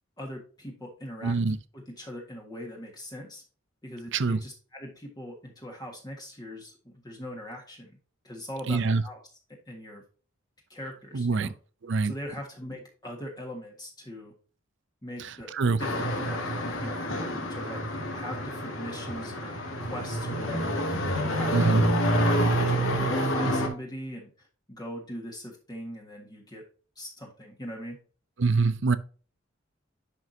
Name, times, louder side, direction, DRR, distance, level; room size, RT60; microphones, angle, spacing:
voice 1, 0.2-1.4 1.7-3.4 3.8-8.0 8.2-9.3 9.7-10.0 10.7-11.5 12.0-14.3 15.0-15.5 15.8-16.4 16.8-20.9 21.2-26.6 26.9-28.0, equal, 20° left, 1.6 m, -41 dB
voice 2, 1.2-1.6 4.1-4.4 8.7-9.0 11.1-11.5 11.9-12.1 15.6-15.8 21.5-21.8 28.4-29.0, right 4 dB, 65° right, 0.6 m, -24 dB
sound 1, 15.8-23.7, equal, 90° left, 2.1 m, -28 dB
11.0 x 4.7 x 2.7 m
head